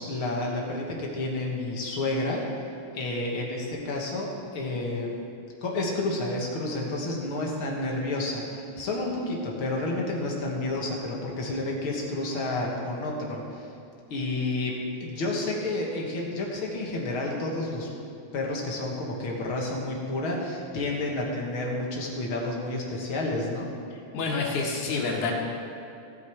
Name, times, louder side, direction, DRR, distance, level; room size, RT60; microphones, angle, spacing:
voice 1, 0.0-2.4 2.9-5.1 5.6-13.7 14.1-17.9 18.3-23.7, left 2 dB, 50° left, -2 dB, 2.0 m, -30 dB
voice 2, 24.1-25.3, left 4 dB, 80° left, -1 dB, 2.9 m, -27 dB
17.5 x 6.9 x 4.6 m, 2.6 s
omnidirectional pair, 3.4 m